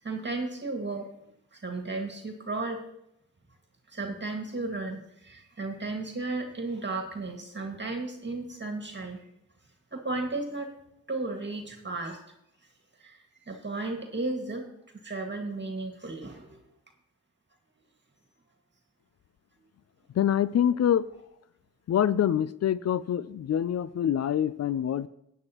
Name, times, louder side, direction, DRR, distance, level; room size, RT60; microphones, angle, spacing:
voice 1, 0.0-1.1 1.5-2.8 3.9-9.2 9.9-10.7 11.1-12.2 13.0-14.6 15.0-16.6, right 3 dB, 30° right, 3 dB, 2.1 m, -34 dB
voice 2, 20.2-21.1 21.9-25.1, left 10 dB, 50° left, 18 dB, 0.5 m, -25 dB
14.5 x 9.3 x 3.0 m, 0.80 s
supercardioid pair, 40°, 34 cm